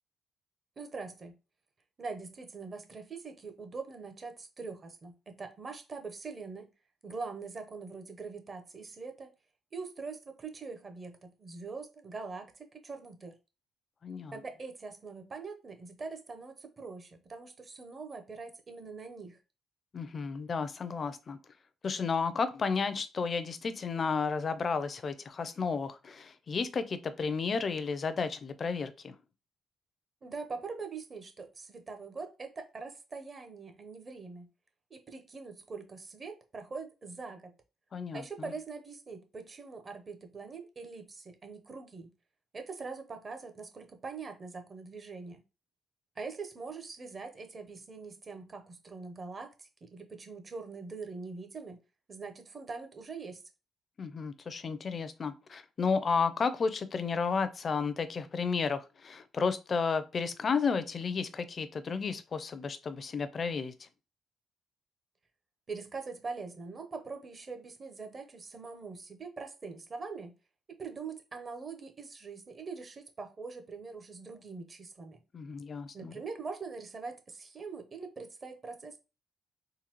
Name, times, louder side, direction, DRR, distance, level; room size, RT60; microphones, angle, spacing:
voice 1, 0.8-1.4 2.0-6.7 7.0-9.3 9.7-13.3 14.3-19.4 30.2-34.5 34.9-37.5 38.1-42.1 42.5-45.4 46.2-51.8 52.1-53.4 65.7-70.3 70.8-75.2 75.9-79.0, right 4 dB, 40° right, 0.8 m, -43 dB
voice 2, 14.0-14.3 19.9-21.4 21.8-29.1 37.9-38.2 54.0-63.9 75.3-76.1, left 5 dB, 45° left, 0.5 m, -32 dB
3.8 x 2.6 x 3.0 m
cardioid pair, 90°, 0 cm